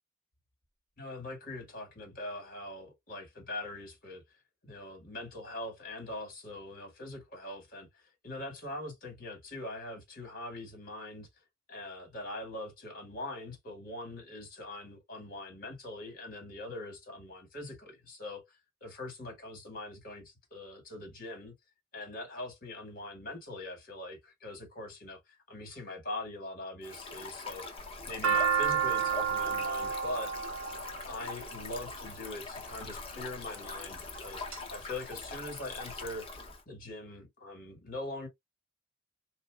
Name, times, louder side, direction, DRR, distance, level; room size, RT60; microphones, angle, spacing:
voice 1, 1.0-4.2 4.6-11.3 11.7-21.5 21.9-27.7 28.1-30.3 31.1-36.3 36.7-38.3, left 2 dB, 45° left, 1.9 m, -42 dB
Stream, 26.8-36.6, left 3 dB, 30° left, 0.8 m, -43 dB
sound 1, 27.8-32.0 32.9-33.3 33.9-34.6 34.9-35.0 35.2-36.0, right 6 dB, 75° right, 1.2 m, -30 dB
3.4 x 3.0 x 2.3 m
head